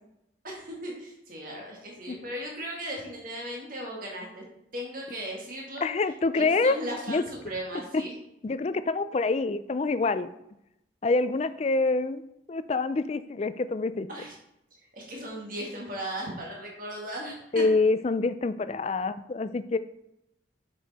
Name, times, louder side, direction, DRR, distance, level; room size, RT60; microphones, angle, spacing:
voice 1, 0.4-4.4 4.7-5.9 6.3-8.1 14.1-14.3 14.9-17.6, right 1 dB, 45° right, -2 dB, 1.9 m, -37 dB
voice 2, 5.8-6.8 7.1-7.2 7.9-8.0 8.4-10.3 11.0-12.2 12.5-14.1 17.5-19.8, left 3 dB, 35° left, 13 dB, 0.3 m, -26 dB
7.4 x 6.3 x 4.1 m, 0.84 s
head